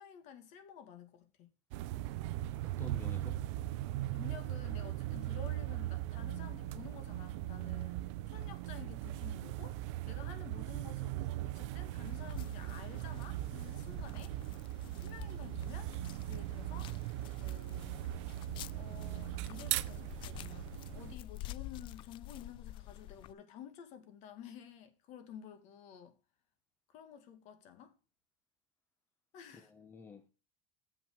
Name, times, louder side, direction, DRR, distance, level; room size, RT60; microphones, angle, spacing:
voice 1, 0.0-1.5 4.1-9.8 10.1-14.6 14.9-15.9 16.3-17.0 17.4-18.1 18.7-26.1 26.9-28.0 29.3-29.7, left 8 dB, 50° left, 1.9 m, -52 dB
sound 1, 1.7-21.1, right 14 dB, 75° right, 0.5 m, -39 dB
voice 2, 2.6-3.4 29.5-30.3, left 4 dB, 15° left, 0.8 m, -50 dB
sound 2, 12.0-23.3, left 14 dB, 35° left, 0.4 m, -50 dB
7.3 x 6.0 x 6.2 m
cardioid pair, 155°, 15 cm